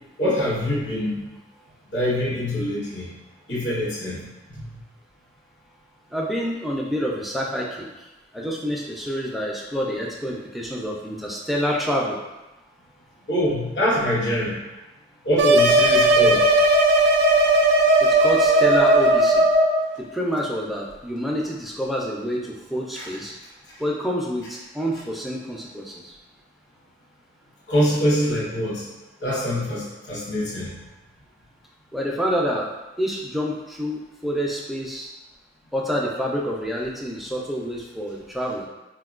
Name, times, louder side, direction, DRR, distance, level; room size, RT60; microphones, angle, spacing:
voice 1, 0.2-1.3 1.9-3.1 3.5-4.7 13.3-14.6 15.2-16.4 23.0-23.1 27.7-28.9 29.2-30.7, equal, 80° left, -6 dB, 0.8 m, -24 dB
voice 2, 6.1-7.9 8.3-12.2 18.0-19.5 20.1-23.3 23.8-26.1 31.9-32.7 33.0-35.1 35.7-38.7, equal, ahead, -2 dB, 0.3 m, -27 dB
sound 1, 15.4-19.8, right 1 dB, 75° right, 0.3 m, -17 dB
4.1 x 2.2 x 2.4 m, 1.1 s
head